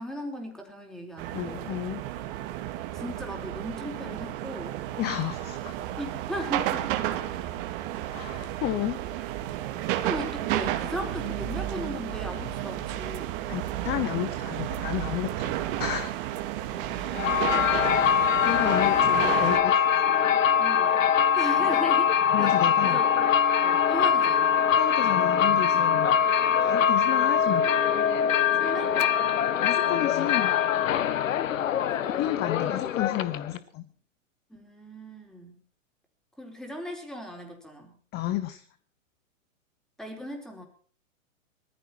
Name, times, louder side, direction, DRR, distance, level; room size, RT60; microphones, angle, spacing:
voice 1, 0.0-1.7 2.9-4.8 6.0-6.9 10.0-13.3 16.7-17.7 18.7-19.0 20.6-21.0 21.3-24.6 28.6-29.2 31.7-32.2 34.5-35.6 36.4-38.0 40.0-40.7, equal, ahead, 2 dB, 4.3 m, -38 dB
sound 1, 1.2-19.6, right 13 dB, 40° right, 2.2 m, -32 dB
voice 2, 1.3-2.0 5.0-5.7 8.1-9.0 13.5-16.1 17.9-20.0 21.2-21.4 22.3-23.0 24.7-26.2 26.6-27.7 29.5-30.5 32.1-33.9 38.1-38.6, left 12 dB, 25° left, 12 dB, 1.0 m, -32 dB
sound 2, 17.1-33.6, left 8 dB, 75° left, 1.4 m, -23 dB
20.5 x 15.0 x 4.5 m, 0.43 s
hypercardioid pair, 135°, 40 cm